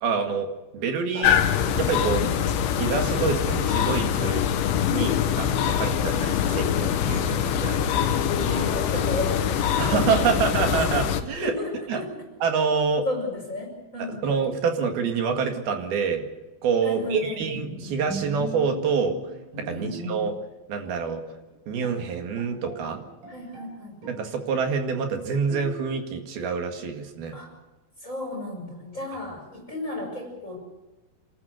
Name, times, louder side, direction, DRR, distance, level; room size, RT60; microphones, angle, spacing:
voice 1, 0.0-0.5 0.7-1.4 1.8-2.2 2.7-4.5 4.9-8.0 9.8-11.5 11.9-12.1 12.4-13.1 14.0-16.3 16.6-19.2 19.6-20.3 20.7-21.2 21.7-23.0 24.1-27.4, right 5 dB, 60° right, 4 dB, 3.6 m, -26 dB
sound 1, 1.2-11.2, left 9 dB, 90° left, 3.7 m, -24 dB
voice 2, 2.1-2.5 5.2-5.6 8.3-9.6 9.9-10.1 11.4-12.1 13.1-14.3 16.8-17.4 19.7-20.0 23.3-23.9 27.3-27.5 28.0-30.6, left 2 dB, 15° left, 1 dB, 5.5 m, -33 dB
Bowed string instrument, 17.5-20.5 20.9-21.1 21.5-21.6 21.8-23.7 24.0-24.8 25.5-26.1, right 1 dB, 45° right, 6.4 m, -39 dB
27.5 x 13.5 x 8.1 m, 1.1 s
omnidirectional pair, 5.2 m